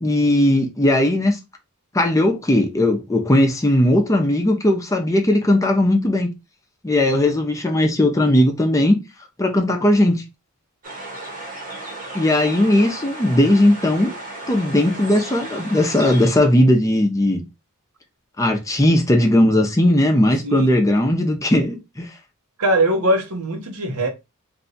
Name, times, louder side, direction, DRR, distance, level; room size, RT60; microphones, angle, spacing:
voice 1, 0.0-1.4 1.9-6.3 6.8-9.0 9.4-10.2 12.1-14.1 14.5-17.4 18.4-22.1, left 1 dB, 15° left, 0.5 m, -17 dB
sound 1, 10.8-16.3, right 2 dB, 40° right, 0.9 m, -34 dB
voice 2, 20.4-20.7 22.6-24.1, right 1 dB, 85° right, 0.8 m, -21 dB
2.6 x 2.2 x 3.9 m
head